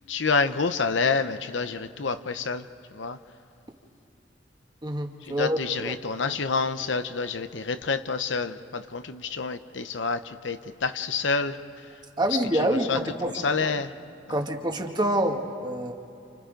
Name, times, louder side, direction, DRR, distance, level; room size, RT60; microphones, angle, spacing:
voice 1, 0.1-2.7 2.9-3.2 5.3-11.6 12.5-13.9, left 4 dB, 70° left, 10 dB, 0.8 m, -28 dB
voice 2, 4.8-5.6 5.8-6.0 12.2-13.3 14.3-15.9, right 1 dB, 25° right, 3 dB, 1.7 m, -26 dB
29.5 x 29.0 x 5.2 m, 2.7 s
head